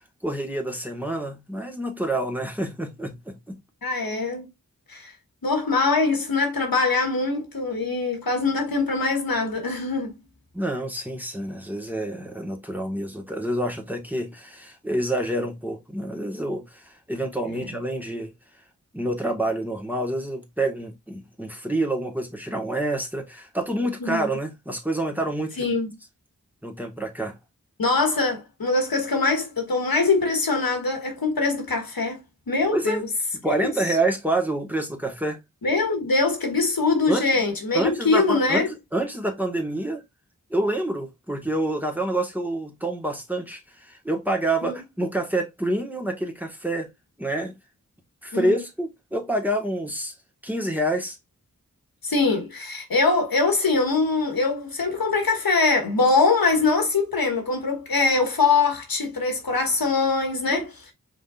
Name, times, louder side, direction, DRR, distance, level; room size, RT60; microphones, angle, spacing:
voice 1, 0.2-3.6 10.5-18.3 18.9-25.7 26.6-27.4 32.7-33.0 33.4-35.4 37.1-37.2 37.7-38.7 38.9-40.0 40.5-46.9 47.2-47.5 48.2-50.1 50.4-51.2 60.5-60.6, right 1 dB, 5° right, 1.6 m, -27 dB
voice 2, 3.8-4.5 4.9-5.1 5.4-10.1 17.5-17.6 24.0-24.3 25.6-25.9 27.8-32.2 32.5-33.1 33.6-33.7 35.6-38.7 44.6-44.8 48.3-48.6 52.0-60.9, left 3 dB, 90° left, 1.5 m, -23 dB
5.1 x 3.9 x 2.5 m
wide cardioid pair, 40°, 35 cm